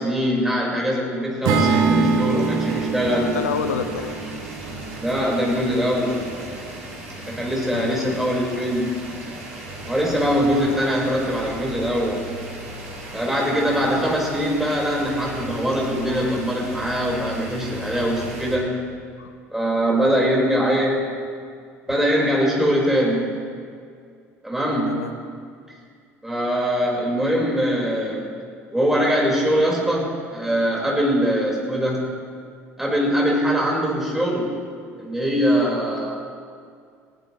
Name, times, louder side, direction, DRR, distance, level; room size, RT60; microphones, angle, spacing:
voice 1, 0.0-3.3 4.9-6.3 7.3-9.0 9.9-12.3 13.1-18.7 19.5-21.0 21.9-23.3 24.4-25.1 26.2-28.3 28.7-32.1 32.8-34.6 35.0-36.2, equal, 5° right, -3 dB, 4.9 m, -22 dB
Acoustic guitar / Strum, 1.4-5.7, right 5 dB, 55° right, 1.4 m, -24 dB
sound 1, 1.5-18.6, right 1 dB, 75° right, 2.6 m, -36 dB
voice 2, 3.1-4.2 7.7-8.2 10.2-10.5 13.7-13.9 19.2-19.3 24.9-25.1, left 6 dB, 75° left, 8 dB, 0.7 m, -29 dB
20.5 x 15.5 x 3.2 m, 2.2 s
figure-of-eight pair, 60°, 8 cm